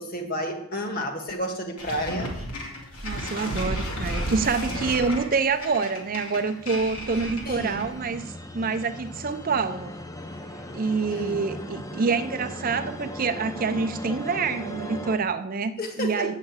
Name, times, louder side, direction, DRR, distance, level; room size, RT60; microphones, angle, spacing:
voice 1, 0.0-2.3 7.4-7.8 11.1-11.5 15.8-16.4, equal, 40° left, 5 dB, 1.4 m, -31 dB
sound 1, 1.8-8.0, equal, 80° left, 2.5 m, -33 dB
voice 2, 3.0-9.9 10.7-16.3, right 4 dB, 40° right, 10 dB, 0.5 m, -27 dB
sound 2, 5.6-15.2, left 1 dB, 15° left, 0.6 m, -39 dB
8.2 x 6.5 x 8.1 m, 0.82 s
head